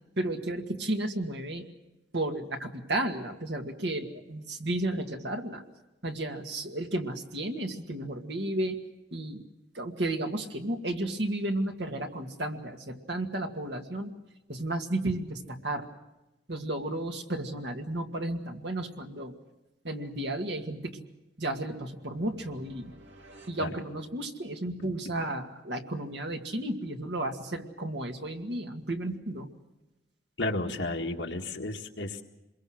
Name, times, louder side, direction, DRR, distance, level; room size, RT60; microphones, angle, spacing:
voice 1, 0.2-1.7 2.1-5.6 6.0-8.8 9.1-9.5 9.7-14.1 14.5-15.9 16.5-19.3 19.8-21.1 21.4-22.9 23.5-29.5, right 1 dB, 65° right, 3 dB, 2.2 m, -33 dB
sound 1, 21.6-24.6, equal, 90° right, 2.1 m, -55 dB
voice 2, 30.4-32.2, left 2 dB, 75° left, 3 dB, 1.8 m, -32 dB
26.0 x 22.5 x 6.4 m, 0.99 s
head